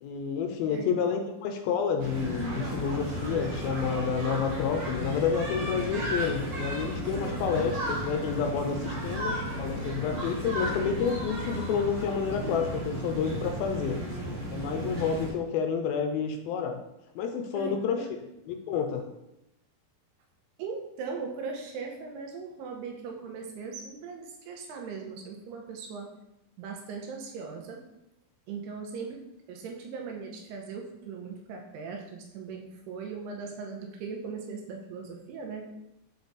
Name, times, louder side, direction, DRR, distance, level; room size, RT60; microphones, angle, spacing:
voice 1, 0.0-14.0 14.5-16.8 17.2-18.0 18.5-19.1, left 6 dB, 80° left, 5 dB, 2.2 m, -29 dB
sound 1, 2.0-15.3, right 1 dB, 60° right, 1.3 m, -34 dB
voice 2, 7.1-7.4 17.5-18.2 20.6-26.1 26.6-27.8 28.5-35.7, right 5 dB, 85° right, 2 dB, 3.0 m, -39 dB
6.9 x 4.7 x 4.0 m, 0.87 s
omnidirectional pair, 4.6 m